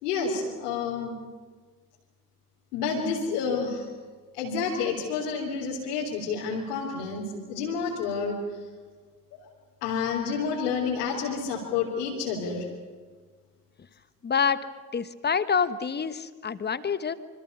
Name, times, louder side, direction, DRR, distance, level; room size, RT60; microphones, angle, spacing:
voice 1, 0.0-1.1 2.7-3.9 4.4-7.2 7.5-8.4 9.3-9.4 9.8-12.6, left 5 dB, 65° left, -3 dB, 3.8 m, -29 dB
voice 2, 14.2-14.7 14.9-17.1, left 6 dB, 20° left, 14 dB, 1.2 m, -27 dB
26.5 x 25.5 x 5.6 m, 1.5 s
figure-of-eight pair, 60°, 48 cm